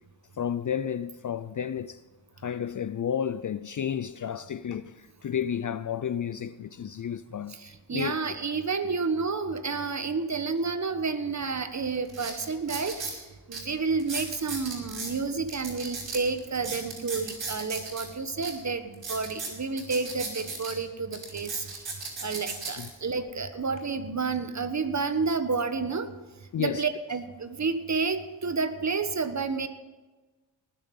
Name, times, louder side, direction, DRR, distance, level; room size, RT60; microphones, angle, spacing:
voice 1, 0.4-2.0 2.4-7.6 7.9-8.2 22.8-22.9 26.5-26.8, left 8 dB, 40° left, 0.5 m, -31 dB
voice 2, 7.5-13.2 13.5-21.9 22.2-26.1 26.6-29.7, right 4 dB, 35° right, 1.3 m, -30 dB
sound 1, 11.4-11.5 12.1-13.2 13.5-13.6 14.0-15.1 15.5-18.1 18.4-18.5 18.9-20.7 21.1-22.9 23.5-23.8, right 4 dB, 60° right, 5.0 m, -36 dB
19.0 x 7.8 x 5.4 m
cardioid pair, 80°, 49 cm